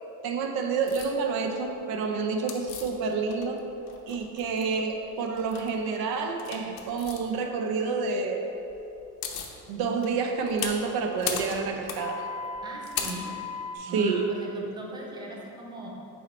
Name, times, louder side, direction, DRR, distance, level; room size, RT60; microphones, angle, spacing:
voice 1, 0.2-3.6 4.1-8.5 9.7-12.3 13.7-14.3, right 4 dB, 80° right, 3 dB, 0.6 m, -29 dB
sound 1, 0.9-1.1 2.5-3.6 3.9-4.8 5.3-5.7 6.4-7.2 8.7-8.8 9.0-9.5 10.0-13.8, left 6 dB, 70° left, 0.7 m, -35 dB
voice 2, 12.6-13.3 13.9-15.9, right 1 dB, 10° right, -2 dB, 0.7 m, -39 dB
5.6 x 4.2 x 4.2 m, 3.0 s
cardioid pair, 150°, 36 cm